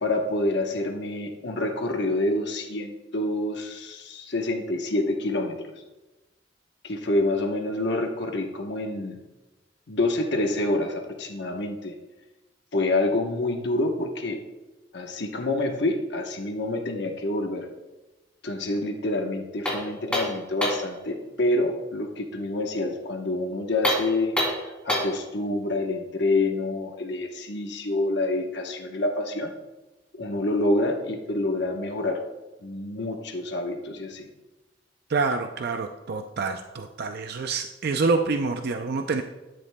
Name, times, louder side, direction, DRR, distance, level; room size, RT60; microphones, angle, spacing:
voice 1, 0.0-5.7 6.8-9.2 9.9-12.0 12.7-14.4 14.9-17.7 18.4-24.4 24.8-29.5 30.1-32.2 32.6-34.3, left 2 dB, 65° left, 3 dB, 1.0 m, -27 dB
sound 1, 19.6-20.9 23.7-25.2, left 1 dB, 5° left, 2.8 m, -27 dB
voice 2, 35.1-39.2, right 4 dB, 60° right, 6 dB, 0.5 m, -27 dB
12.0 x 10.0 x 2.2 m, 1.1 s
head